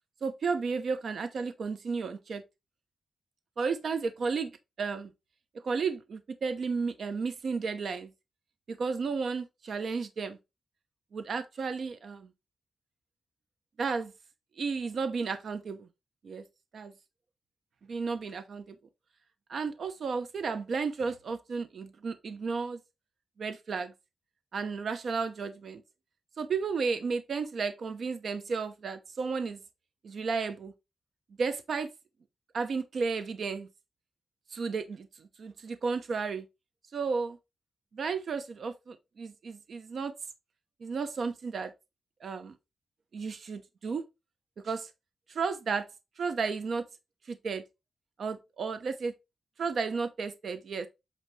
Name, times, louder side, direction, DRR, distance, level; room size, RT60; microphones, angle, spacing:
voice 1, 0.2-2.4 3.6-4.5 4.8-5.1 5.5-8.1 8.7-10.4 11.1-12.3 13.8-14.1 14.6-15.9 16.2-16.4 16.7-16.9 17.9-18.8 19.5-22.8 23.4-23.9 24.5-25.8 26.4-29.6 30.0-30.7 31.4-31.9 32.5-33.7 34.5-36.5 36.9-37.4 37.9-40.1 40.8-41.7 42.2-42.6 43.1-44.0 44.6-44.9 45.3-45.9 46.2-46.8 47.3-47.6 48.2-49.1 49.6-50.9, right 5 dB, 60° right, 0.8 m, -33 dB
8.2 x 2.9 x 4.6 m
wide cardioid pair, 135°, 0 cm